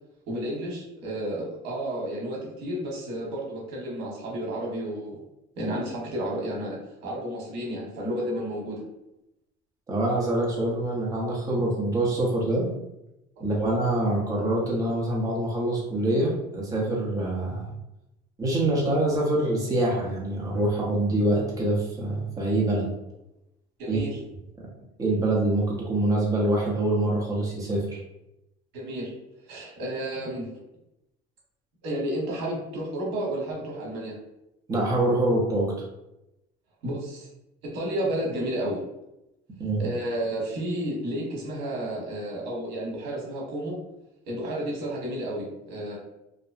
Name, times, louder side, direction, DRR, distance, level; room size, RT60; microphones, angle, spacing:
voice 1, 0.3-5.2 5.6-8.8 13.4-13.5 23.8-24.2 28.7-29.1 29.5-30.4 31.8-34.1 36.8-37.3 37.6-38.8 39.8-43.8 44.3-46.0, right 1 dB, 80° right, -3 dB, 1.0 m, -31 dB
voice 2, 9.9-12.7 13.4-17.7 18.4-22.9 23.9-24.0 25.0-28.0 34.7-35.7 39.6-39.8, right 1 dB, 20° right, -4 dB, 0.7 m, -25 dB
2.6 x 2.1 x 2.4 m, 0.88 s
cardioid pair, 155°, 17 cm